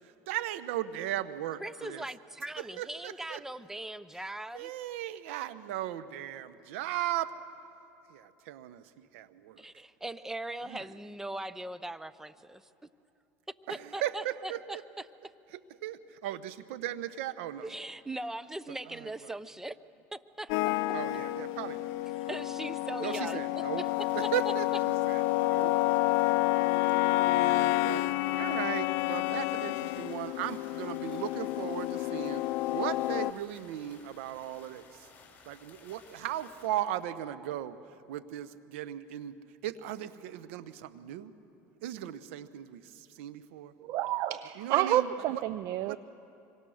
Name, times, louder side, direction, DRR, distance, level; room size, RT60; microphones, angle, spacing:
voice 1, 0.0-2.1 2.6-3.4 4.5-7.3 8.1-9.6 10.7-10.9 13.7-14.8 15.5-17.7 18.9-19.1 20.9-22.0 22.3-22.4 23.0-23.9 24.1-25.8 26.2-26.4 27.2-28.0 28.3-35.1 35.5-37.8 38.1-39.4 39.6-41.3 41.8-43.7 44.6-45.4 45.8-46.0, right 12 dB, 80° right, 12 dB, 1.0 m, -37 dB
voice 2, 1.6-4.7 9.6-12.6 13.7-14.8 17.6-19.8 20.1-20.7 22.3-23.4 24.0-24.1, right 1 dB, 5° right, 14 dB, 0.7 m, -40 dB
sound 1, 20.5-33.3, left 18 dB, 65° left, 0.4 m, -29 dB
sound 2, 23.8-36.7, left 4 dB, 25° left, 5.8 m, -57 dB
voice 3, 43.8-46.0, right 13 dB, 60° right, 15 dB, 0.5 m, -29 dB
25.5 x 23.5 x 6.5 m, 2.8 s
supercardioid pair, 100°, 7 cm